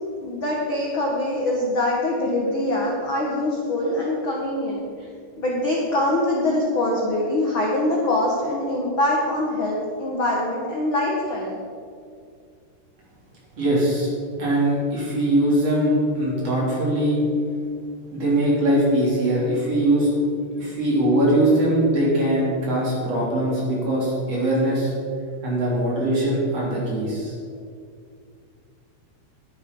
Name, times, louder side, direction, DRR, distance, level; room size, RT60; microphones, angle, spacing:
voice 1, 0.2-4.8 5.4-11.6, left 1 dB, 55° left, -3 dB, 1.4 m, -23 dB
voice 2, 13.6-14.1 14.4-17.2 18.1-20.2 20.6-24.9 25.4-27.3, right 1 dB, 40° right, -6 dB, 4.3 m, -21 dB
11.5 x 11.0 x 5.5 m, 2.3 s
omnidirectional pair, 4.8 m